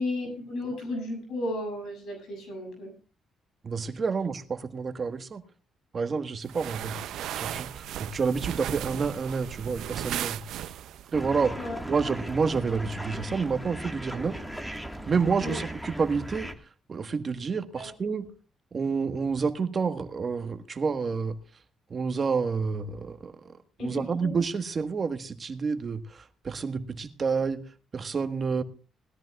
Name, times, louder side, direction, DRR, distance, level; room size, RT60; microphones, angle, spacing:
voice 1, 0.0-2.9 11.6-11.8 15.4-15.6 17.7-17.9 23.8-24.3, left 1 dB, 70° left, 7.5 m, -34 dB
voice 2, 3.6-5.4 5.9-10.4 11.1-11.6 11.9-14.4 15.1-16.5 16.9-18.3 18.7-21.4 21.9-27.6 27.9-28.6, right 5 dB, 40° right, 1.4 m, -29 dB
sound 1, 6.5-11.1, right 11 dB, 80° right, 0.5 m, -36 dB
sound 2, 11.1-16.5, equal, 5° left, 1.6 m, -38 dB
20.0 x 14.0 x 2.4 m
cardioid pair, 90°, 0 cm